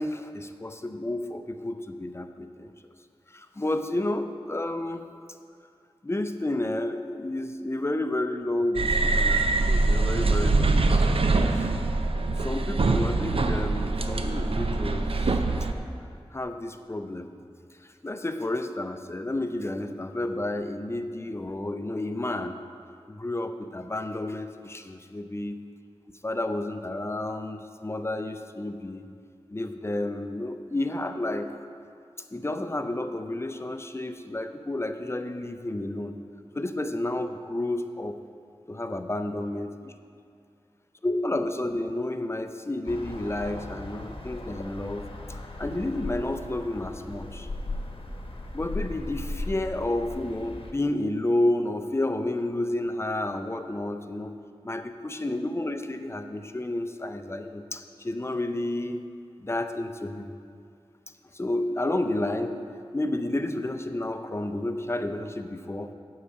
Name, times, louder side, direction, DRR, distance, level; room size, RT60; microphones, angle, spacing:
voice 1, 0.0-2.7 3.3-5.0 6.0-11.6 12.4-15.4 16.3-17.3 18.0-22.5 23.1-25.6 26.2-29.0 29.5-31.5 32.3-36.2 36.5-38.2 38.7-39.9 41.0-47.5 48.5-54.3 54.6-59.0 59.4-60.3 61.3-62.6 62.9-65.9, left 1 dB, 25° left, 8 dB, 0.5 m, -31 dB
sound 1, 8.8-15.7, right 3 dB, 65° right, 0.5 m, -24 dB
sound 2, 42.9-50.7, left 2 dB, 60° left, 1.0 m, -37 dB
8.4 x 4.8 x 6.8 m, 2.3 s
wide cardioid pair, 55°, 10 cm